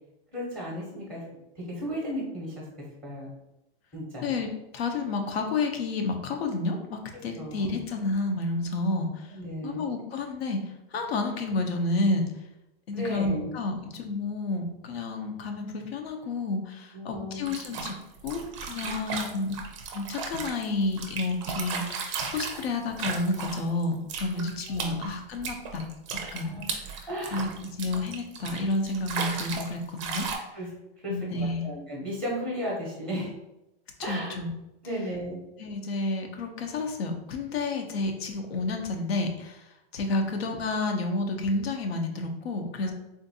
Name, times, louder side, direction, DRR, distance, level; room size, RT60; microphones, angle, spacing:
voice 1, 0.3-1.2 1.6-2.6 3.0-3.3 3.9-4.3 7.4-7.8 9.3-9.8 12.9-13.5 16.9-17.5 18.8-19.4 24.7-25.0 26.1-26.7 27.1-27.5 27.8-27.9 30.5-30.7 31.0-33.3 34.0-34.4 34.8-35.4 42.8-42.9, equal, 5° left, -3 dB, 0.7 m, -35 dB
voice 2, 4.2-9.4 9.6-12.2 12.9-17.9 18.2-19.6 19.9-25.9 26.3-26.9 27.3-30.3 31.1-31.7 34.0-34.5 35.6-42.9, left 2 dB, 90° left, 4 dB, 0.7 m, -30 dB
sound 1, 17.5-23.8 24.1-29.7 30.0-30.4, right 5 dB, 30° right, 0.4 m, -35 dB
3.7 x 2.6 x 2.6 m, 0.90 s
supercardioid pair, 165°, 30 cm